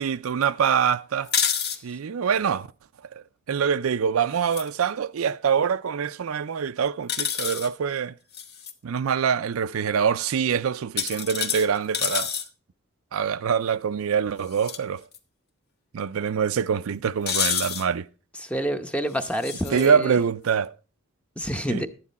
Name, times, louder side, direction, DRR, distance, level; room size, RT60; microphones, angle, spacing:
voice 1, 0.0-1.3 1.8-2.7 3.1-8.1 8.8-12.3 13.1-15.0 15.9-18.1 19.7-20.7 21.7-21.9, right 7 dB, 85° right, 0.4 m, -25 dB
sound 1, 1.2-1.8 4.3-4.7 7.1-7.7 8.3-8.7 11.0-12.5 14.5-14.8 15.1-15.2 17.3-17.9 19.2-19.9, left 7 dB, 50° left, 1.0 m, -28 dB
voice 2, 18.4-20.2 21.4-21.9, equal, 5° left, 0.8 m, -28 dB
11.5 x 9.6 x 4.1 m
head